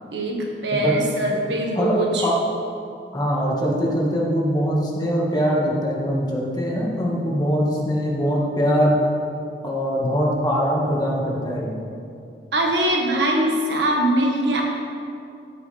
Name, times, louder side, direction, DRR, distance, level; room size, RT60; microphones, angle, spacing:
voice 1, 0.1-2.3 12.5-14.6, right 1 dB, 75° right, 0 dB, 1.8 m, -22 dB
voice 2, 3.1-8.9 9.6-11.7, equal, 25° left, -4 dB, 1.9 m, -22 dB
14.0 x 9.1 x 3.5 m, 2.5 s
head